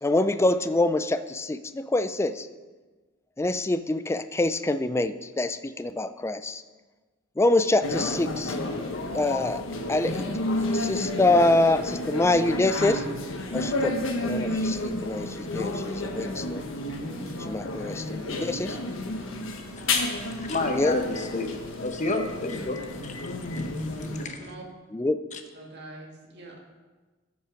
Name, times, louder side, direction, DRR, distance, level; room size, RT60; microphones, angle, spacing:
voice 1, 0.0-2.5 3.4-6.6 7.4-8.6 9.1-9.6 9.9-10.3 10.7-13.0 13.5-16.6 17.5-18.8 20.7-21.0 24.0-24.1 24.9-25.2, left 2 dB, 15° left, 12 dB, 0.3 m, -25 dB
sound 1, 7.8-24.3, left 2 dB, 85° left, 1.3 m, -31 dB
voice 2, 19.6-21.5 21.8-22.8 23.0-24.4 25.3-25.4, left 2 dB, 40° left, 5 dB, 1.0 m, -31 dB
voice 3, 25.5-26.6, right 2 dB, 60° right, 0 dB, 1.9 m, -44 dB
13.5 x 5.4 x 5.1 m, 1.3 s
head